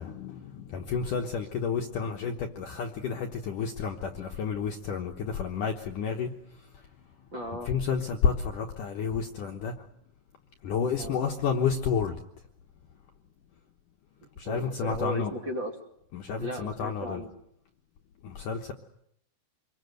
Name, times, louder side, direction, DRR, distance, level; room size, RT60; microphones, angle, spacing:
voice 1, 0.0-6.3 7.7-9.7 10.6-12.2 14.4-15.3 16.1-17.2 18.2-18.7, left 6 dB, 65° left, 3 dB, 2.2 m, -30 dB
voice 2, 7.3-7.7 11.0-11.2 14.2-15.8 16.4-17.3, equal, 30° right, 1 dB, 2.7 m, -36 dB
27.0 x 22.5 x 8.0 m, 0.74 s
omnidirectional pair, 5.1 m